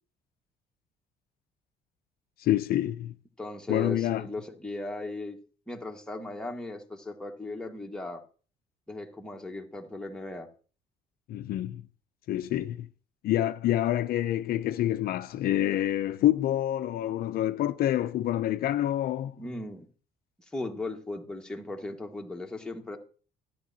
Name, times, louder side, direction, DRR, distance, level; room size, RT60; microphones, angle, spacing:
voice 1, 2.4-3.1 3.7-4.3 11.3-11.8 12.3-12.9 13.2-19.4, left 13 dB, 65° left, 0.5 m, -27 dB
voice 2, 3.4-5.4 5.7-8.2 8.9-10.5 19.4-19.9 20.5-23.0, left 2 dB, 5° left, 1.4 m, -37 dB
12.0 x 10.0 x 2.8 m
cardioid pair, 110°, 17 cm